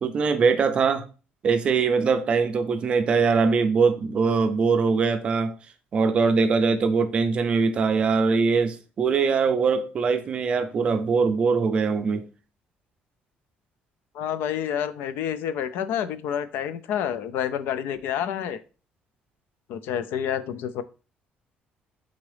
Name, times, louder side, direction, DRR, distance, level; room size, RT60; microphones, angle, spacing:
voice 1, 0.0-1.1 1.4-5.5 5.9-12.2, right 5 dB, 30° right, 0.4 m, -22 dB
voice 2, 14.1-18.6 19.7-20.8, left 9 dB, 75° left, 0.4 m, -28 dB
3.9 x 3.6 x 3.2 m
cardioid pair, 180°, 4 cm